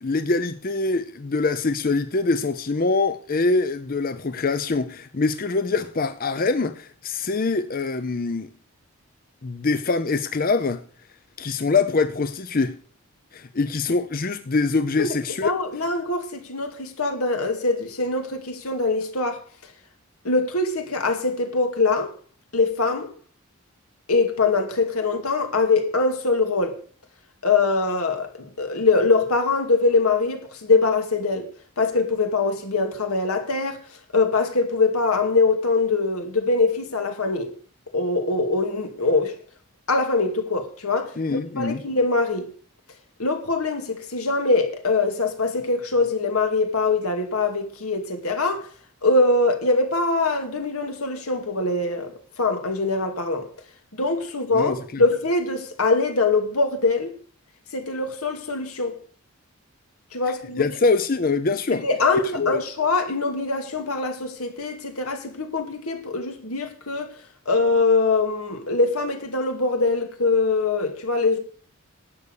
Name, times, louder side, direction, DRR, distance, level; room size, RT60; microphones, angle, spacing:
voice 1, 0.0-8.5 9.4-10.8 11.4-12.8 13.3-15.5 41.2-41.8 54.5-55.0 60.6-61.9 62.4-62.6, left 3 dB, 40° left, 0.6 m, -24 dB
voice 2, 15.4-19.4 20.2-22.1 22.5-23.1 24.1-26.8 27.4-31.5 31.8-37.5 37.9-39.4 39.9-42.5 43.2-48.7 49.0-53.5 53.9-57.1 57.7-59.0 60.1-60.6 61.7-67.1 67.5-71.4, left 3 dB, 85° left, 2.3 m, -23 dB
11.5 x 8.5 x 6.6 m
head